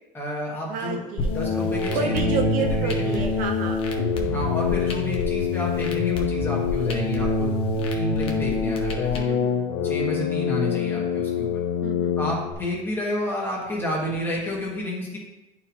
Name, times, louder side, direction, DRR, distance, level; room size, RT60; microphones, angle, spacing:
voice 1, 0.1-1.0 1.3-3.3 4.3-9.3 9.8-11.6 12.2-15.2, left 1 dB, 10° left, -3 dB, 1.3 m, -30 dB
voice 2, 0.7-1.3 1.9-3.8 4.1-4.7 8.1-8.6 9.2-9.7 11.8-12.4, right 5 dB, 45° right, 3 dB, 0.6 m, -31 dB
sound 1, 1.2-12.5, left 5 dB, 85° left, 1.0 m, -26 dB
sound 2, 1.2-9.2, left 3 dB, 30° left, 0.8 m, -31 dB
10.5 x 4.3 x 2.8 m, 0.98 s
cardioid pair, 180°, 19 cm